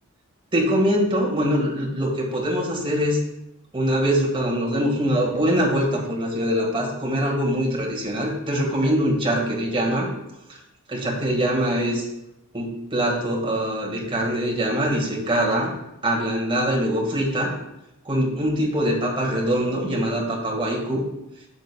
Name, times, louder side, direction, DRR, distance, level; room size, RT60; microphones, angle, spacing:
voice 1, 0.5-3.2 3.7-10.1 10.5-10.6 10.9-12.1 12.5-15.7 16.0-17.5 18.1-21.0, equal, 25° right, -2 dB, 1.7 m, -23 dB
10.5 x 6.3 x 2.3 m, 0.88 s
head